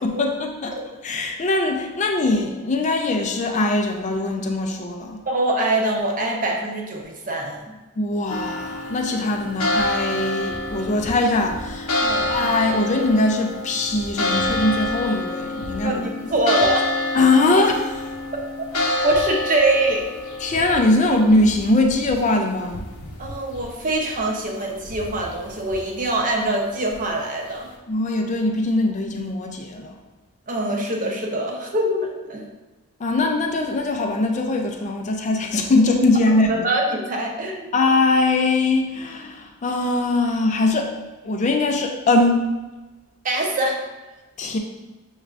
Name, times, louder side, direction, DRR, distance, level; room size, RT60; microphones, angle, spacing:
voice 1, 0.0-0.7 1.0-5.2 8.0-11.9 12.3-16.0 17.1-18.1 20.4-22.9 27.9-30.0 33.0-36.6 37.7-40.9 41.2-42.4 44.4-44.6, left 2 dB, 35° left, 3 dB, 0.4 m, -21 dB
voice 2, 5.3-7.7 12.0-12.4 15.8-16.9 19.0-20.1 23.2-27.7 30.5-32.4 36.5-37.7 43.2-43.8, right 1 dB, 40° right, 0 dB, 0.7 m, -24 dB
sound 1, 8.3-27.5, left 1 dB, 80° left, 0.7 m, -28 dB
6.2 x 3.3 x 2.5 m, 1.2 s
head